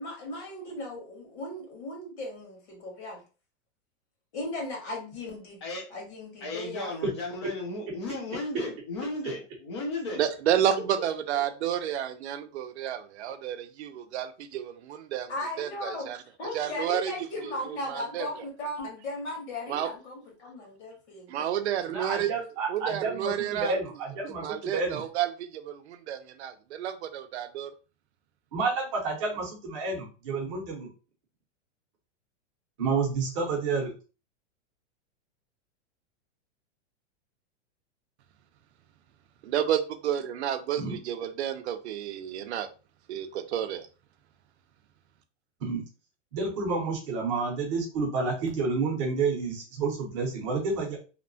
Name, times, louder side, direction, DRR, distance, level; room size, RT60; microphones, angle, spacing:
voice 1, 0.0-3.2 4.3-5.6 5.9-7.1 15.3-16.1 16.4-21.5, left 1 dB, 65° left, 1.4 m, -37 dB
voice 2, 6.4-10.2, left 2 dB, 25° left, 0.4 m, -35 dB
voice 3, 10.2-15.3 15.6-16.2 16.5-17.1 17.4-18.3 19.7-19.9 21.3-22.3 22.7-23.8 24.2-27.7 39.4-42.7 43.1-43.9, right 10 dB, 65° right, 0.5 m, -31 dB
voice 4, 21.9-24.4 24.7-25.0 28.5-30.9 32.8-33.9 40.8-41.0 45.6-45.8 46.3-51.0, right 4 dB, 25° right, 0.7 m, -29 dB
2.8 x 2.1 x 2.6 m
supercardioid pair, 175°, 37 cm